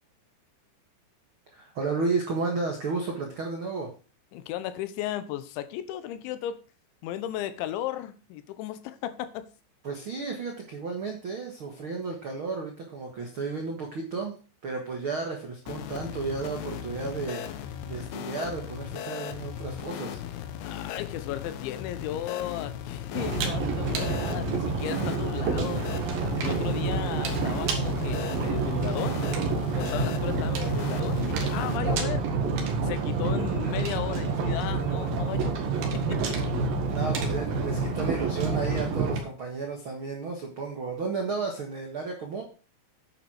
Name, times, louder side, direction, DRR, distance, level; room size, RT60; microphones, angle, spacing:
voice 1, 1.5-3.9 9.8-14.3 14.6-20.2 36.9-42.4, right 4 dB, 85° right, 1.1 m, -33 dB
voice 2, 4.3-6.6 7.0-9.5 20.6-25.8 26.4-29.2 29.7-32.2 32.8-35.6 35.9-36.4, left 12 dB, 90° left, 3.3 m, -35 dB
sound 1, 15.7-31.8, left 10 dB, 75° left, 2.6 m, -37 dB
sound 2, 23.1-39.2, right 4 dB, 60° right, 3.3 m, -28 dB
9.3 x 8.8 x 4.8 m
omnidirectional pair, 5.2 m